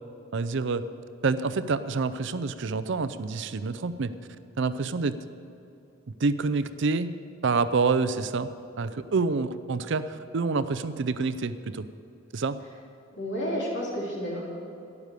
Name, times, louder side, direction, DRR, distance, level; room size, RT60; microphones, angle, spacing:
voice 1, 0.3-0.9 1.2-4.1 4.6-5.2 6.2-7.1 7.4-11.9 12.3-12.6, right 4 dB, 65° right, 13 dB, 0.5 m, -27 dB
voice 2, 13.1-14.4, equal, 60° left, -4 dB, 3.6 m, -30 dB
12.0 x 11.0 x 6.7 m, 2.7 s
head